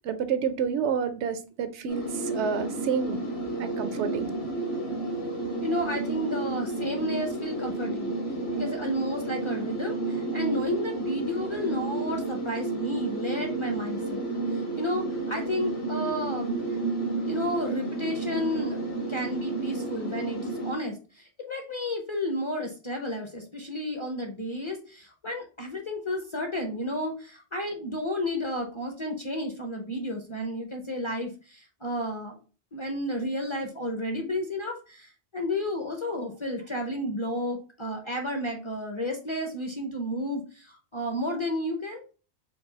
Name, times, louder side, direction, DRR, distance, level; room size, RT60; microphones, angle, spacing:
voice 1, 0.0-3.2 3.6-4.3, right 7 dB, 80° right, 0.9 m, -29 dB
sound 1, 1.9-20.7, right 2 dB, 65° left, 1.3 m, -31 dB
voice 2, 5.6-8.1 8.5-16.6 17.3-18.8 19.1-32.4 32.7-42.0, left 1 dB, 35° left, 0.6 m, -32 dB
4.6 x 2.3 x 3.8 m
omnidirectional pair, 1.2 m